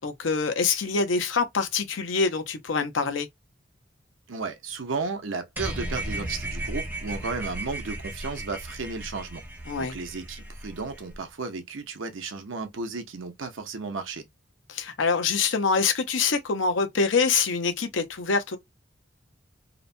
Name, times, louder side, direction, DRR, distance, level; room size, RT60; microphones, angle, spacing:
voice 1, 0.0-3.3 9.7-9.9 14.7-18.6, left 5 dB, 75° left, 0.6 m, -25 dB
voice 2, 4.3-9.4 9.8-14.2, right 4 dB, 90° right, 0.7 m, -34 dB
sound 1, 5.6-11.2, right 1 dB, 10° right, 0.6 m, -35 dB
2.8 x 2.1 x 2.6 m
head